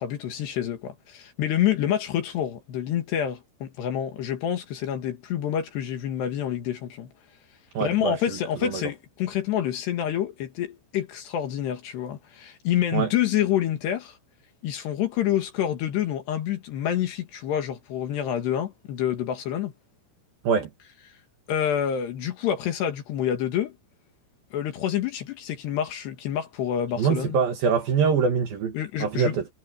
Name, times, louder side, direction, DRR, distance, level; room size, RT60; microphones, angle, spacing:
voice 1, 0.0-7.1 7.8-14.2 14.6-19.7 21.5-23.7 24.5-27.4 28.8-29.4, left 10 dB, 65° left, 3.6 m, -27 dB
voice 2, 7.7-8.8 12.9-13.1 20.4-20.7 27.0-29.5, right 6 dB, 60° right, 3.0 m, -24 dB
omnidirectional pair, 5.8 m